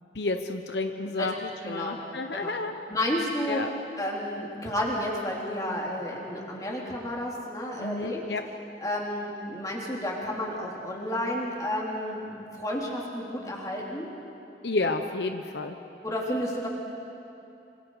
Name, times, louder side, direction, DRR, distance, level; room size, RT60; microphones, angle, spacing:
voice 1, 0.1-2.7 3.5-3.7 7.8-8.4 14.6-15.8, left 3 dB, 80° left, 6 dB, 1.0 m, -30 dB
voice 2, 1.6-2.0 2.3-2.5 2.9-3.6 4.0-8.2 8.8-14.1 16.0-16.7, left 1 dB, 20° left, -3 dB, 3.5 m, -31 dB
27.0 x 26.0 x 5.0 m, 2.9 s
head